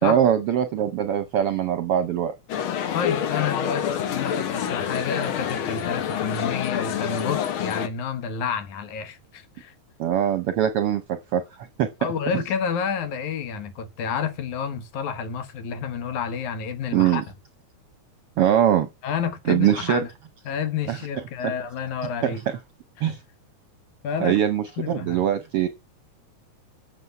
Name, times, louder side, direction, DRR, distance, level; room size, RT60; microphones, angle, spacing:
voice 1, 0.0-2.3 10.0-11.4 11.8-11.9 16.9-17.2 18.4-18.9 19.5-20.0 20.9-21.0 22.2-22.3 23.0-23.2 24.2-25.7, right 10 dB, 70° right, 1.5 m, -22 dB
sound 1, 2.5-7.9, left 9 dB, 60° left, 1.5 m, -27 dB
voice 2, 2.9-9.7 12.0-17.2 19.0-20.1 20.5-22.4 23.0-23.2 24.0-24.4 24.8-25.3, left 6 dB, 80° left, 2.7 m, -30 dB
13.5 x 7.0 x 5.9 m
omnidirectional pair, 3.4 m